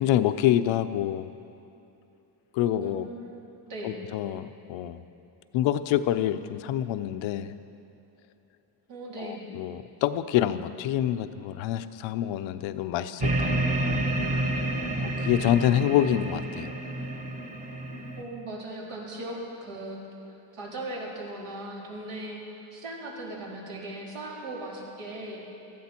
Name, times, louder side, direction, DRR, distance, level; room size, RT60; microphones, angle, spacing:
voice 1, 0.0-1.3 2.5-3.1 3.8-5.0 5.5-7.6 9.2-14.0 14.3-14.4 15.0-16.7, left 12 dB, 75° left, 10 dB, 0.8 m, -27 dB
voice 2, 2.7-4.0 8.9-9.5 18.2-20.0 20.5-22.4 22.7-25.4, right 1 dB, 70° right, -4 dB, 3.9 m, -38 dB
sound 1, 13.2-18.2, right 1 dB, 15° right, 1.1 m, -29 dB
18.0 x 14.0 x 4.5 m, 2.8 s
cardioid pair, 130°, 46 cm